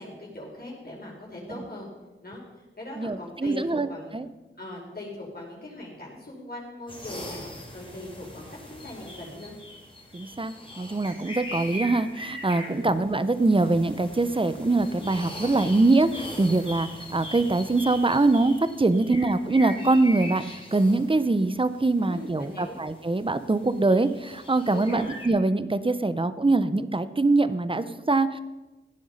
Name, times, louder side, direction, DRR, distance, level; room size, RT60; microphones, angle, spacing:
voice 1, 0.0-1.9 2.2-2.4 2.8-4.1 4.6-8.4 8.7-9.5 12.6-12.9 22.0-22.8 24.7-25.1, left 1 dB, 45° left, -4 dB, 5.0 m, -40 dB
voice 2, 3.0-4.3 10.1-28.4, right 2 dB, 25° right, 13 dB, 0.9 m, -23 dB
sound 1, 6.9-25.3, left 1 dB, 25° left, 3.9 m, -41 dB
16.0 x 9.3 x 5.6 m, 1.1 s
wide cardioid pair, 60°, 21 cm